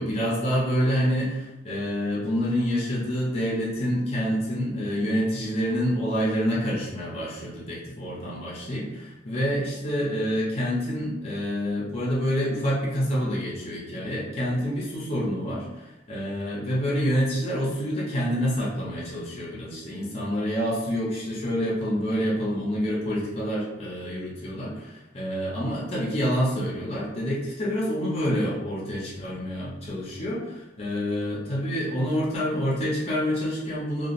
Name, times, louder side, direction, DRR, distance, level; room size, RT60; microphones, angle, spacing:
voice 1, 0.0-34.1, equal, 35° left, -6 dB, 0.7 m, -27 dB
2.8 x 2.3 x 2.5 m, 0.97 s
head